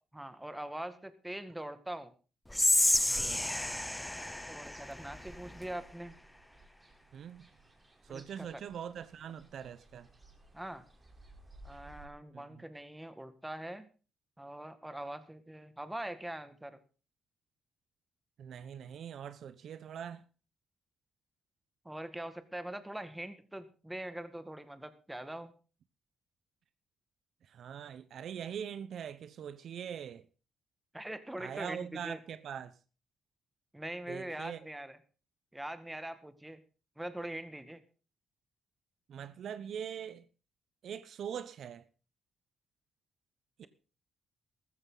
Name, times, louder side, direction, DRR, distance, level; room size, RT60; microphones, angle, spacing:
voice 1, 0.1-2.1 4.5-6.1 8.1-8.6 10.5-10.8 11.6-13.9 14.4-16.8 21.9-25.5 30.9-32.2 33.7-35.0 35.5-36.6 37.0-37.8, right 1 dB, 10° right, 1.9 m, -42 dB
Whispering, 2.5-5.7, left 1 dB, 10° left, 0.7 m, -30 dB
sound 1, 2.8-12.1, right 2 dB, 25° right, 3.7 m, -59 dB
voice 2, 3.1-3.4 7.1-7.5 8.0-10.1 11.7-11.8 12.3-12.4 18.4-20.3 27.5-30.2 31.4-32.7 34.1-34.6 39.1-40.3 40.8-41.8 43.6-43.7, right 8 dB, 65° right, 0.8 m, -42 dB
14.5 x 13.5 x 3.9 m
cardioid pair, 90°, 0 cm